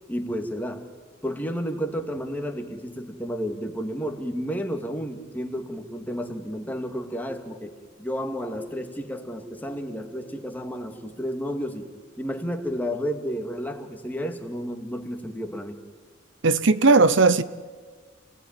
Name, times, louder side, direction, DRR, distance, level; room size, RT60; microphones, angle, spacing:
voice 1, 0.1-0.9 1.2-7.7 8.0-15.8, equal, 10° left, 2.2 m, -31 dB
voice 2, 16.4-17.4, right 3 dB, 70° right, 0.9 m, -17 dB
28.5 x 18.5 x 9.1 m
head